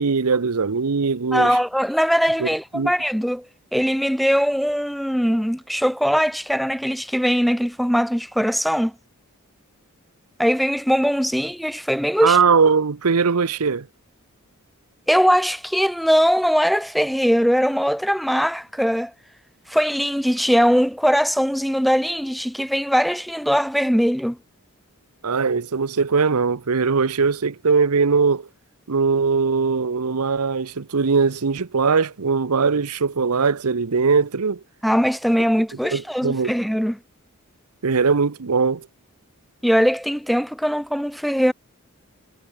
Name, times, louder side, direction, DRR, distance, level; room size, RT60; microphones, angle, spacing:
voice 1, 0.0-1.6 2.4-2.5 2.7-2.9 12.2-13.9 25.2-28.5 28.9-34.6 35.9-36.5 37.8-38.9, right 5 dB, 85° right, 0.8 m, -20 dB
voice 2, 1.3-3.5 3.7-8.9 10.4-12.4 15.1-19.1 19.7-24.4 34.8-37.0 39.6-41.5, equal, ahead, 0.5 m, -20 dB
head